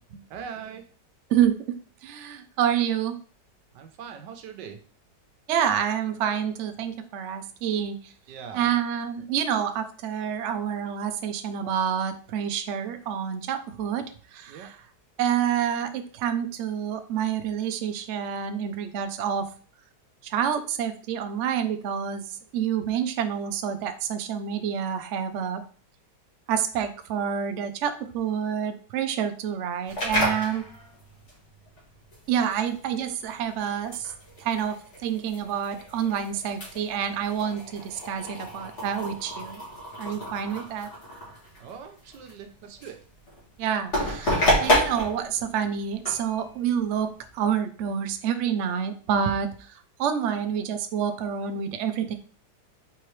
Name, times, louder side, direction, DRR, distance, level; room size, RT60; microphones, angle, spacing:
voice 1, 0.3-0.9 3.7-4.9 8.3-8.7 14.5-14.7 41.6-43.0, right 7 dB, 90° right, 6 dB, 1.4 m, -41 dB
voice 2, 2.0-3.2 5.5-8.0 8.5-14.1 14.3-14.6 15.2-19.5 20.2-22.2 22.5-25.6 26.5-30.6 32.3-34.1 34.4-34.8 35.0-39.6 40.0-40.9 43.6-49.5 50.0-52.1, right 8 dB, 70° right, 8 dB, 0.7 m, -28 dB
sound 1, 29.9-47.5, equal, 40° left, 2.0 m, -31 dB
4.5 x 3.7 x 3.1 m, 0.41 s
omnidirectional pair, 1.8 m